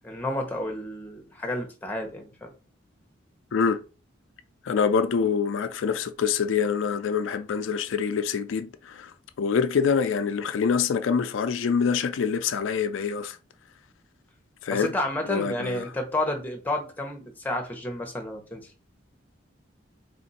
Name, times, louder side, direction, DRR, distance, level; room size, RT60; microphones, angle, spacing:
voice 1, 0.0-2.5 14.7-18.7, left 1 dB, 10° left, 0.8 m, -31 dB
voice 2, 3.5-3.8 4.6-13.4 14.6-14.9 15.3-15.9, left 6 dB, 75° left, 0.4 m, -25 dB
3.8 x 2.5 x 4.1 m
head